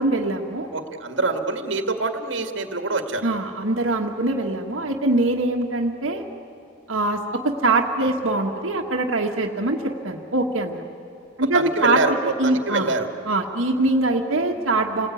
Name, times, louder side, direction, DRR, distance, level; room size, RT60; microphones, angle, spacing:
voice 1, 0.0-0.7 3.2-6.2 6.9-7.2 7.4-10.8 11.4-12.9 13.3-15.1, right 2 dB, 90° right, 0 dB, 1.6 m, -23 dB
voice 2, 0.7-3.3 8.0-8.1 11.5-13.1, right 3 dB, 70° right, 6 dB, 2.0 m, -25 dB
29.0 x 19.5 x 9.3 m, 2.8 s
head